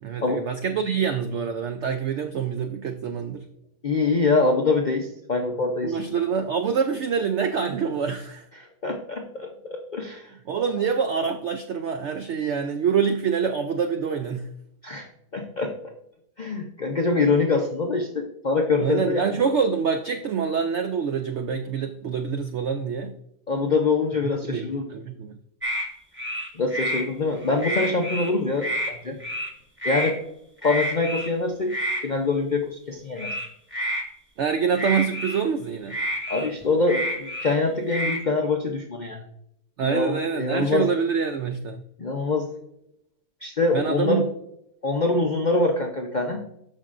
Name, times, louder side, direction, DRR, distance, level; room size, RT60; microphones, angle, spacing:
voice 1, 0.0-3.4 5.8-8.5 10.5-14.5 18.8-23.1 24.5-25.3 34.4-36.0 39.8-41.8 43.7-44.3, right 6 dB, 85° right, 0.6 m, -26 dB
voice 2, 3.8-6.0 8.6-10.3 14.8-15.1 15.3-15.7 16.4-19.3 23.5-24.9 26.5-29.2 29.8-30.2 30.6-31.7 32.0-33.3 36.3-39.2 39.8-40.9 42.0-42.5 43.4-44.3 44.8-46.4, left 3 dB, 65° left, 0.4 m, -24 dB
sound 1, 25.6-25.9 26.2-27.0 27.4-28.3 28.6-28.9 29.2-29.5 29.8-30.1 30.6-31.3 31.7-32.0 33.2-34.0 34.8-35.4 35.9-37.6 37.9-38.2, equal, 10° right, 1.0 m, -29 dB
13.0 x 5.3 x 2.5 m
omnidirectional pair, 1.8 m